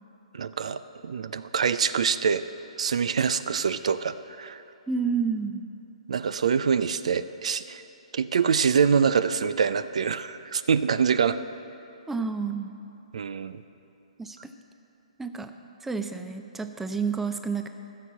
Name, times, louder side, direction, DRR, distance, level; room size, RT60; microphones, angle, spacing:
voice 1, 0.3-2.4 2.8-4.6 6.1-7.8 8.1-11.4 13.1-13.6, right 6 dB, 65° right, 13 dB, 0.4 m, -25 dB
voice 2, 4.9-5.6 12.1-12.7 14.2-14.4 15.2-15.5 15.8-17.7, right 5 dB, 5° right, 7 dB, 0.5 m, -29 dB
14.0 x 6.7 x 7.4 m, 2.9 s
figure-of-eight pair, 130°, 4 cm